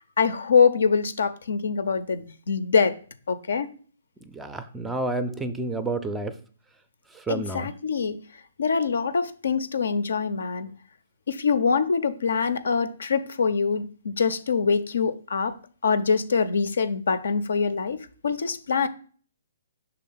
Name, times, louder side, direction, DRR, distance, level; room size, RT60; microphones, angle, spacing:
voice 1, 0.2-2.9 3.3-3.7 7.3-8.2 8.6-10.7 11.3-15.5 15.8-18.9, left 5 dB, 65° left, 0.5 m, -24 dB
voice 2, 4.3-6.3 7.1-7.7, right 2 dB, 10° right, 0.4 m, -30 dB
5.7 x 3.4 x 5.5 m
figure-of-eight pair, 125°, 0 cm